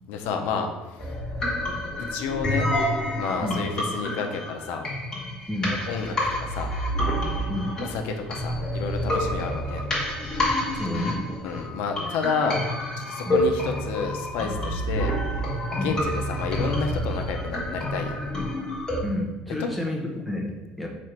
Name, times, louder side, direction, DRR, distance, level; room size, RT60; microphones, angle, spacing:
voice 1, 0.1-1.1 2.1-2.7 3.1-4.9 5.9-6.1 6.4-6.7 7.8-9.8 11.4-12.6 13.0-15.1 15.7-18.2 19.6-19.7, left 5 dB, 80° left, 4 dB, 0.6 m, -30 dB
sound 1, 1.0-19.0, equal, 20° left, 1.2 m, -28 dB
voice 2, 7.5-7.8 10.7-11.3 13.3-13.4 15.8-16.0 19.0-20.9, left 1 dB, ahead, -1 dB, 0.6 m, -30 dB
4.3 x 2.5 x 4.5 m, 1.1 s
cardioid pair, 155°, 3 cm